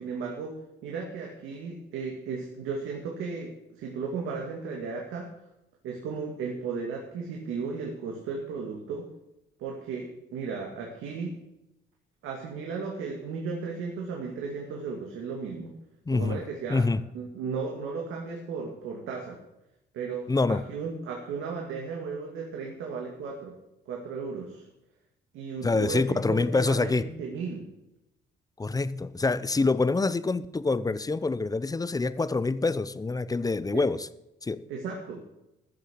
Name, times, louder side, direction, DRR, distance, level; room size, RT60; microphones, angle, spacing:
voice 1, 0.0-5.3 5.8-9.1 9.6-11.4 12.2-15.7 16.1-16.9 17.1-19.4 19.9-23.5 23.9-24.7 25.3-27.7 33.7-33.8 34.7-35.3, right 5 dB, 90° right, 0 dB, 2.3 m, -35 dB
voice 2, 16.1-16.4 16.7-17.0 20.3-20.6 25.6-27.1 28.6-34.1 34.4-34.6, left 3 dB, 20° left, 15 dB, 0.7 m, -26 dB
14.0 x 6.9 x 7.8 m, 0.89 s
cardioid pair, 90°, 20 cm